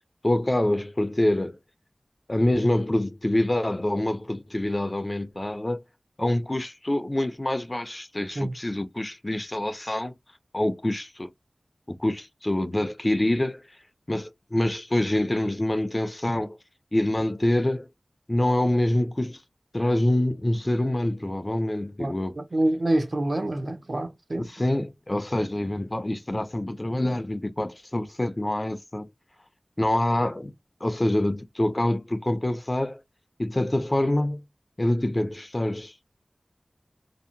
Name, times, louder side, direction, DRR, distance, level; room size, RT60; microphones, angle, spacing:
voice 1, 0.2-1.6 2.3-5.8 6.2-10.1 10.5-11.3 11.9-13.6 14.1-16.6 16.9-17.9 18.3-19.4 19.7-22.4 24.4-29.1 29.8-30.5 30.8-33.0 33.4-34.4 34.8-35.9, left 1 dB, 30° left, 0.4 m, -26 dB
voice 2, 22.0-24.5, right 1 dB, 60° right, 0.5 m, -27 dB
2.7 x 2.0 x 2.5 m
wide cardioid pair, 50°, 0 cm